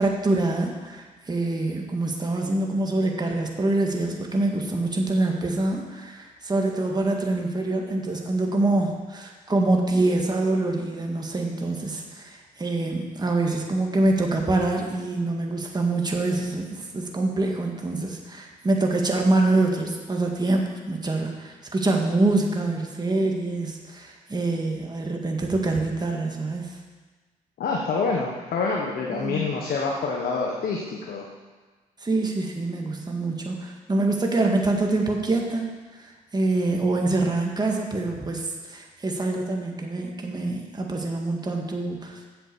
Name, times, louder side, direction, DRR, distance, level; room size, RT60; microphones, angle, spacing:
voice 1, 0.0-26.8 29.1-29.5 32.0-35.7 36.3-42.3, right 2 dB, 25° right, 1 dB, 1.9 m, -25 dB
voice 2, 27.6-31.3, left 4 dB, 65° left, 0 dB, 1.3 m, -27 dB
7.8 x 7.6 x 6.9 m, 1.3 s
supercardioid pair, 60°, 17 cm